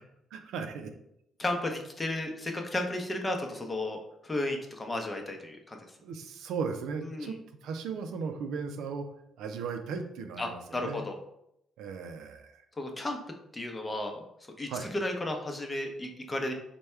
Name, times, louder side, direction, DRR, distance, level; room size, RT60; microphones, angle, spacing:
voice 1, 0.3-0.9 6.0-7.3 7.6-9.1 9.4-11.0 11.8-12.6 14.7-14.9, right 5 dB, 85° right, 6 dB, 0.4 m, -36 dB
voice 2, 1.4-5.8 7.0-7.3 10.4-11.2 12.8-13.2 13.5-14.2 14.6-16.5, left 1 dB, 20° left, 3 dB, 0.7 m, -33 dB
3.4 x 2.2 x 4.3 m, 0.78 s
cardioid pair, 90°, 0 cm